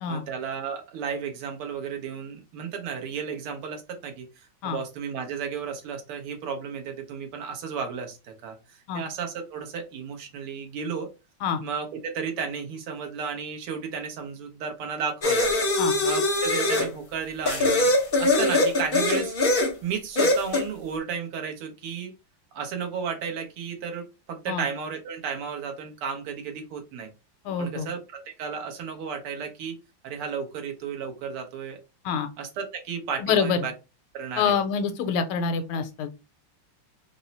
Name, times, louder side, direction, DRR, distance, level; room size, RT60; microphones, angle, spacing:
voice 1, 0.1-11.1 11.6-15.5 16.0-22.1 22.5-27.1 27.6-29.8 30.0-31.8 32.4-33.7 34.1-34.6, right 6 dB, 80° right, 4 dB, 1.8 m, -33 dB
sound 1, 15.2-16.9 17.5-19.7 20.2-20.7, left 2 dB, 45° left, 0.7 m, -22 dB
voice 2, 27.4-27.9 32.0-32.3 33.2-33.6 34.4-36.1, left 6 dB, 80° left, 8 dB, 1.5 m, -26 dB
4.4 x 2.0 x 3.9 m, 0.27 s
omnidirectional pair, 2.4 m